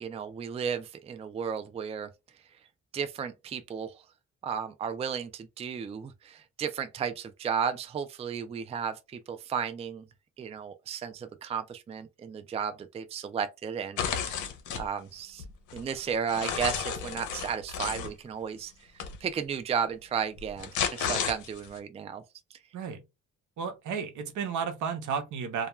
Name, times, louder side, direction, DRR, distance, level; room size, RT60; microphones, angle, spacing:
voice 1, 0.0-2.1 2.9-3.9 4.4-10.0 10.4-14.0 14.7-15.4 15.7-18.7 19.2-22.2 22.5-22.6, right 7 dB, 20° right, 0.3 m, -34 dB
Tearing paper, 14.0-14.9 15.4-18.1 19.0-19.2 20.4-21.8, left 7 dB, 75° left, 0.7 m, -32 dB
voice 2, 23.6-25.7, right 6 dB, 75° right, 0.7 m, -33 dB
2.3 x 2.2 x 3.0 m
cardioid pair, 90°, 30 cm